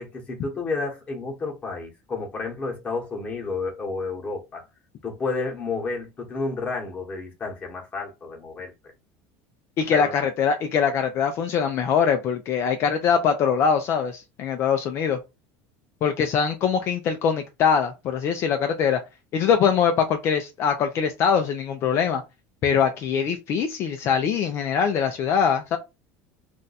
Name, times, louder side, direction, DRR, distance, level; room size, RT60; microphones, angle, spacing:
voice 1, 0.0-4.6 5.0-8.7 9.9-10.1, left 3 dB, 20° left, 1.1 m, -31 dB
voice 2, 9.8-15.2 16.0-19.0 19.3-22.2 22.6-25.8, left 7 dB, 40° left, 0.4 m, -22 dB
2.6 x 2.2 x 4.0 m
cardioid pair, 155°, 7 cm